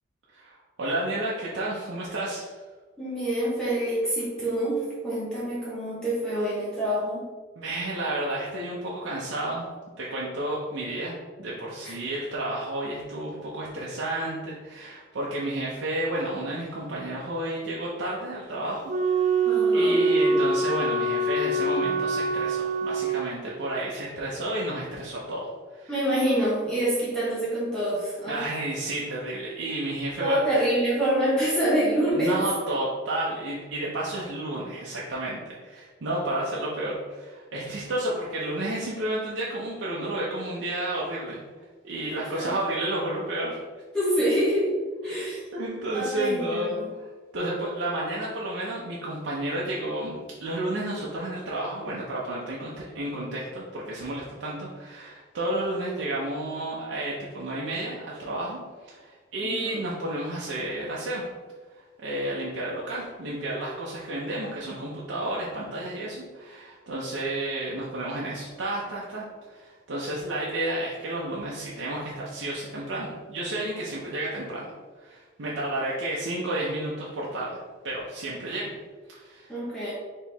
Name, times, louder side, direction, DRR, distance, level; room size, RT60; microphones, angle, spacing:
voice 1, 0.3-2.5 7.6-9.7 10.0-25.9 28.3-30.4 32.2-41.4 41.8-43.6 45.0-45.2 45.5-47.0 47.3-61.2 62.0-74.7 75.0-78.7 79.1-79.5, right 1 dB, 85° right, -5 dB, 0.7 m, -31 dB
voice 2, 3.0-7.3 11.8-11.9 19.4-19.9 25.9-28.4 30.2-32.4 42.1-42.5 43.9-44.7 45.0-45.4 45.9-46.9 59.4-59.8 79.5-79.9, right 1 dB, 5° left, -9 dB, 0.9 m, -26 dB
Wind instrument woodwind instrument, 18.9-23.2, right 2 dB, 40° right, 0.4 m, -24 dB
4.4 x 3.0 x 3.4 m, 1.5 s
head